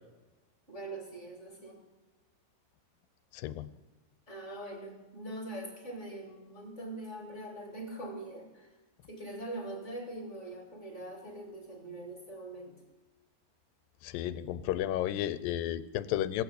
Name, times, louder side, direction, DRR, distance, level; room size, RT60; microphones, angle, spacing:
voice 1, 0.7-1.8 4.3-8.7 9.1-12.8, right 1 dB, 25° left, 2 dB, 1.9 m, -42 dB
voice 2, 3.3-3.7 14.0-16.4, left 12 dB, 85° left, 14 dB, 2.4 m, -33 dB
16.5 x 6.9 x 8.3 m, 1.2 s
omnidirectional pair, 4.0 m